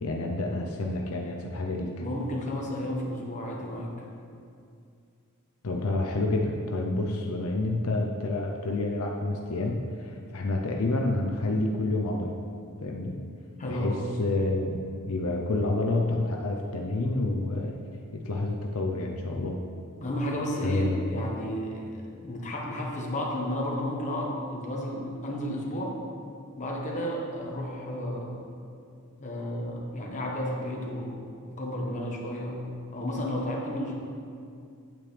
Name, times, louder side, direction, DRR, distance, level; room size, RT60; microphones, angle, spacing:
voice 1, 0.0-1.9 5.6-12.3 12.8-13.2 13.6-17.7 18.1-19.6 20.6-21.0, left 2 dB, 75° left, 0 dB, 0.7 m, -29 dB
voice 2, 2.0-4.1 13.6-14.0 20.0-21.9 22.2-26.0 26.6-28.4 29.2-32.6 32.9-33.9, left 1 dB, 35° left, -2 dB, 1.3 m, -32 dB
8.8 x 8.8 x 3.3 m, 2.4 s
head